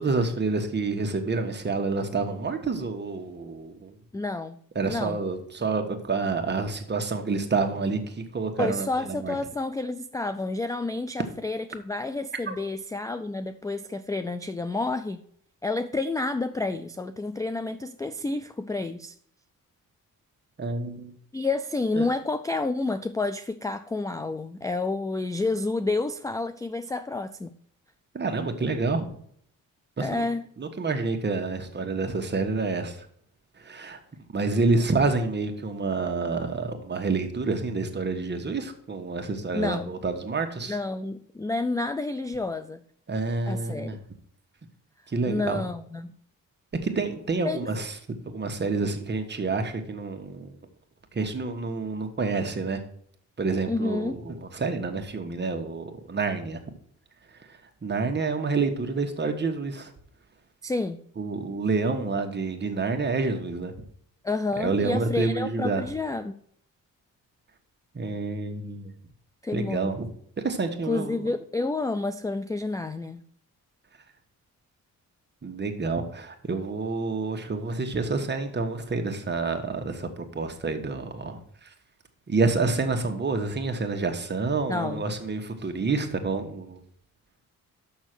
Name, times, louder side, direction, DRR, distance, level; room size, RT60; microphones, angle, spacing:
voice 1, 0.0-3.9 4.7-9.4 12.5-12.6 20.6-21.1 22.0-22.1 28.1-29.1 30.0-30.2 30.6-33.1 33.6-34.0 34.3-40.8 43.1-44.0 45.1-45.7 46.8-48.0 48.2-50.6 51.1-52.8 53.4-56.6 57.3-59.9 61.2-63.7 64.6-65.9 67.9-68.9 69.5-70.1 70.4-71.3 75.4-81.7 82.3-86.8, right 3 dB, 30° right, 1.4 m, -28 dB
voice 2, 4.1-4.6 4.9-5.2 8.6-15.2 15.6-19.2 21.3-27.5 30.0-30.4 39.5-39.9 40.7-42.8 43.5-44.0 45.3-46.1 47.4-47.6 53.7-54.2 60.6-61.0 64.2-66.3 69.4-69.9 70.9-73.2 84.7-85.0, left 3 dB, 10° left, 0.3 m, -29 dB
6.3 x 6.3 x 6.1 m
cardioid pair, 95°, 34 cm